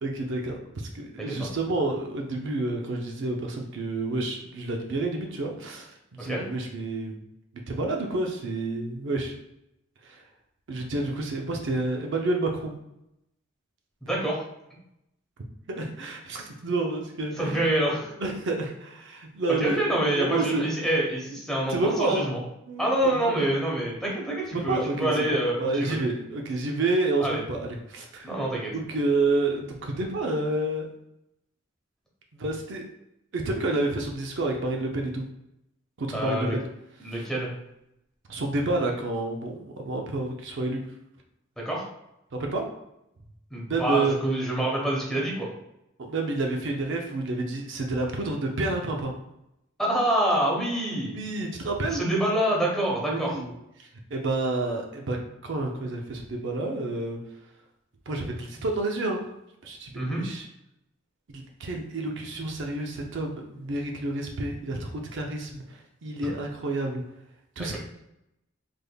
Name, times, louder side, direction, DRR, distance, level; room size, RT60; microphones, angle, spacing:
voice 1, 0.0-7.1 7.7-9.3 10.0-10.2 10.7-12.7 15.7-17.7 18.2-20.6 21.7-22.3 22.7-22.9 23.3-23.5 24.5-28.3 28.7-30.9 32.3-32.8 33.3-35.2 36.0-36.6 37.1-37.3 38.3-40.8 42.4-42.6 43.7-44.2 46.0-49.1 51.1-52.0 53.1-53.5 53.8-55.2 55.4-57.2 58.1-59.2 59.6-60.5 61.3-67.0 67.6-67.8, right 2 dB, 60° right, 2 dB, 0.5 m, -29 dB
voice 2, 14.0-14.4 17.3-18.1 19.6-22.4 22.8-26.0 27.2-27.4 28.2-28.7 36.1-36.5 37.0-37.5 41.6-41.8 43.5-45.5 49.8-51.2 51.9-53.4 59.9-60.2, right 1 dB, ahead, -4 dB, 0.9 m, -26 dB
3.4 x 3.4 x 2.2 m, 0.84 s
head